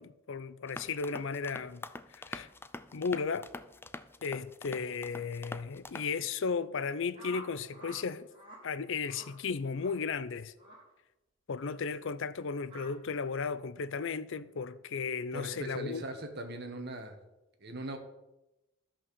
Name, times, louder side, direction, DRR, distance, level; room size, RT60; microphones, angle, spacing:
voice 1, 0.0-1.8 2.1-2.5 2.9-3.5 4.2-8.3 8.6-10.5 11.5-16.0, left 5 dB, 60° left, 0.5 m, -35 dB
sound 1, 0.7-6.2, left 2 dB, 10° left, 0.4 m, -45 dB
sound 2, 7.1-8.0 8.3-8.6 9.0-9.3 9.7-10.0 10.6-10.8 11.5-11.8 12.7-12.9, equal, 25° right, 4.0 m, -49 dB
voice 2, 15.3-17.2 17.6-18.0, right 1 dB, 50° right, 1.6 m, -40 dB
13.0 x 5.9 x 6.9 m
head